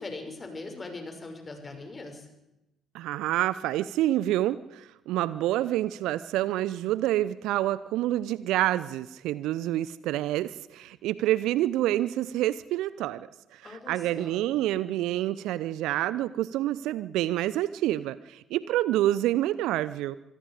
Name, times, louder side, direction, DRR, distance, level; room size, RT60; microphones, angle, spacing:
voice 1, 0.0-2.3 13.6-14.4, left 3 dB, 30° left, 4 dB, 6.3 m, -40 dB
voice 2, 2.9-20.2, right 14 dB, 60° right, 17 dB, 0.7 m, -28 dB
25.5 x 20.5 x 5.0 m, 0.90 s
figure-of-eight pair, 50°, 0 cm